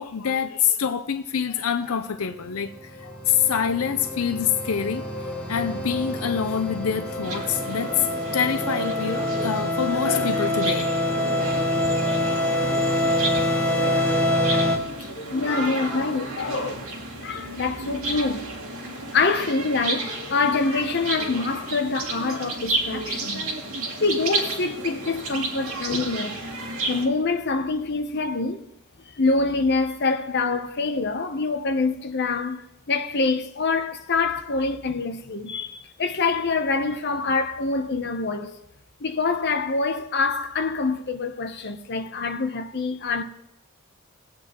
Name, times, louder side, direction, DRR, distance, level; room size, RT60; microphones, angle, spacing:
voice 1, 0.0-10.9, left 7 dB, 80° left, 0.6 m, -26 dB
sound 1, 2.3-14.8, left 1 dB, 5° left, 2.1 m, -26 dB
sound 2, 7.2-27.1, right 2 dB, 80° right, 2.3 m, -32 dB
voice 2, 15.0-16.9 17.2-18.5 19.1-23.5 24.0-26.4 26.9-28.6 29.1-38.6 39.0-43.2, left 4 dB, 50° left, 0.9 m, -25 dB
21.0 x 8.6 x 3.1 m
head